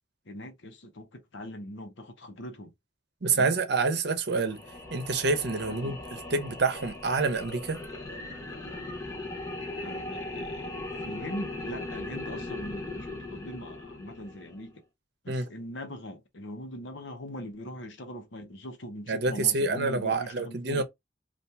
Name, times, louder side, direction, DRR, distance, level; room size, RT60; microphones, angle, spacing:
voice 1, 0.3-2.7 3.3-3.6 5.7-5.9 9.8-10.8 11.0-14.8 15.2-20.8, equal, 85° left, 0.8 m, -41 dB
voice 2, 3.2-4.6 4.9-7.8 15.3-15.5 19.1-20.8, right 4 dB, 65° right, 0.7 m, -27 dB
sound 1, 4.4-14.7, left 2 dB, 20° left, 1.0 m, -39 dB
2.8 x 2.5 x 3.3 m
head